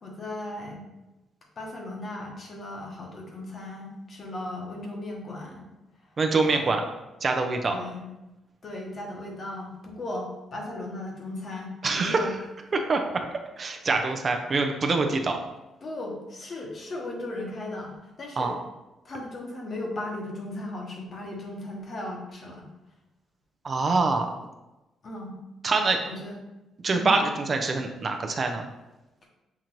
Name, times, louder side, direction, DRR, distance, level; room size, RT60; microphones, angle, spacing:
voice 1, 0.0-0.8 1.6-5.6 6.3-6.7 7.7-8.0 8.6-12.3 13.8-13.9 15.8-18.5 19.0-22.6 25.0-25.4 26.0-26.4 26.9-27.2, left 1 dB, 45° left, 0 dB, 1.0 m, -36 dB
voice 2, 6.2-6.8 7.2-7.8 11.8-12.4 12.7-13.2 13.6-15.4 18.4-18.5 23.6-24.3 25.6-26.0 26.8-28.7, right 3 dB, 40° right, 4 dB, 0.4 m, -25 dB
5.9 x 2.5 x 2.9 m, 1.0 s
cardioid pair, 90°, 0 cm